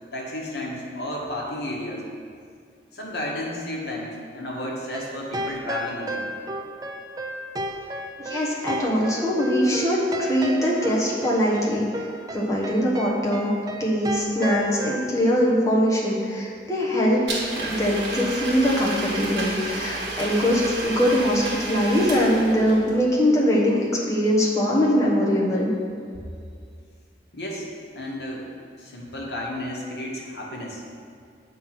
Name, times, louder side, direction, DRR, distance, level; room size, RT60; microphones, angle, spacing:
voice 1, 0.1-2.1 2.9-6.3 27.3-28.5 28.8-30.8, left 1 dB, 75° left, -2 dB, 1.3 m, -32 dB
sound 1, 4.9-15.1, right 1 dB, 20° right, 0.4 m, -33 dB
voice 2, 8.2-13.5 13.8-17.2 17.5-23.8 24.1-25.7, equal, 20° left, -5 dB, 1.2 m, -22 dB
Domestic sounds home sounds, 17.3-22.9, right 2 dB, 85° right, 1.4 m, -31 dB
7.5 x 3.7 x 5.9 m, 2.2 s
head